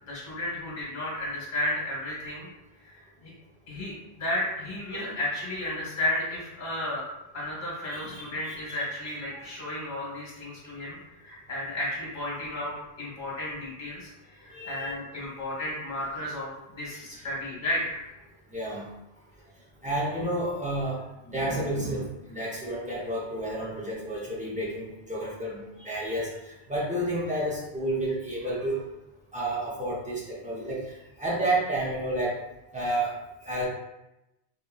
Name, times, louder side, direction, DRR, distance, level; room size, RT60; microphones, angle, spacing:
voice 1, 0.1-2.5 2.8-3.3 3.7-7.1 7.3-12.7 13.0-18.0, left 1 dB, 40° left, -6 dB, 1.2 m, -33 dB
voice 2, 7.9-8.8 14.5-14.9 17.1-17.2 18.5-18.9 19.8-21.0 21.3-26.3 26.7-28.8 29.3-30.8 31.2-32.3 32.7-33.1 33.4-33.7, right 1 dB, 10° right, -6 dB, 0.5 m, -30 dB
2.7 x 2.7 x 2.3 m, 0.94 s
omnidirectional pair, 1.1 m